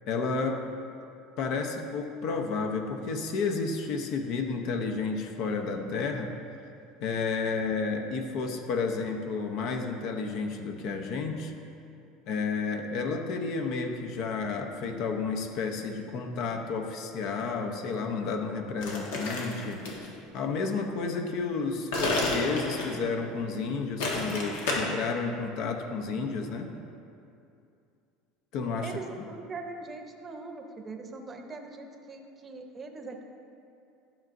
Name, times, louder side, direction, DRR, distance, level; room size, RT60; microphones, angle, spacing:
voice 1, 0.1-0.6 1.4-6.3 7.0-11.5 12.3-26.7 28.5-28.9, left 4 dB, 60° left, 4 dB, 0.8 m, -31 dB
sound 1, 18.8-20.1 21.9-23.1 24.0-24.7, left 2 dB, 85° left, 1.4 m, -30 dB
voice 2, 28.8-33.2, right 3 dB, 25° right, 4 dB, 0.7 m, -41 dB
12.0 x 6.0 x 2.6 m, 2.6 s
supercardioid pair, 125°, 0 cm